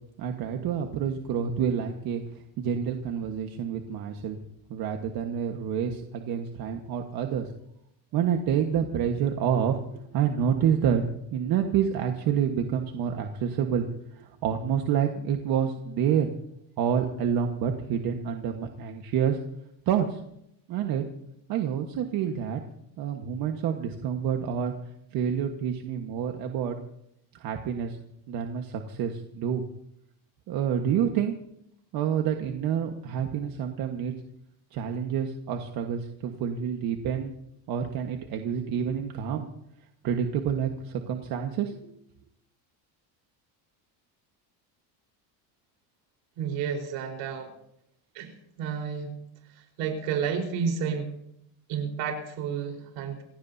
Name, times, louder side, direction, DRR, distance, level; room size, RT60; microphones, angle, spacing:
voice 1, 0.2-2.2 2.6-4.4 4.7-7.5 8.1-9.8 10.1-11.0 11.3-13.9 14.1-16.3 16.8-19.4 19.9-20.2 20.7-21.0 21.5-22.6 23.0-24.7 25.1-26.8 27.4-28.0 28.3-29.6 30.5-31.4 31.9-34.1 34.7-37.3 37.7-39.5 40.0-41.9, right 8 dB, 55° right, 4 dB, 1.5 m, -28 dB
voice 2, 46.4-47.5 48.1-48.3 48.6-49.1 49.5-51.1 51.7-53.2, right 6 dB, 75° right, 3 dB, 4.6 m, -31 dB
28.5 x 16.0 x 2.8 m, 0.76 s
cardioid pair, 160°, 43 cm